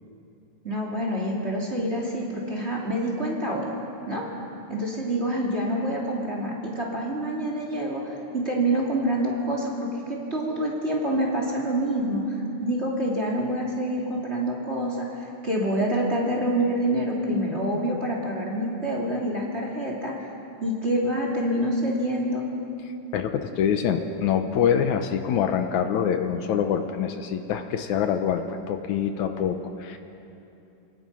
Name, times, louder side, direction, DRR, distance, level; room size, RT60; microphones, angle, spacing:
voice 1, 0.6-3.7 4.1-4.2 4.7-20.1 20.6-22.4, right 1 dB, 20° right, -3 dB, 2.9 m, -27 dB
voice 2, 23.1-30.0, left 8 dB, 75° left, 7 dB, 2.2 m, -25 dB
28.0 x 18.5 x 5.6 m, 2.8 s
omnidirectional pair, 3.6 m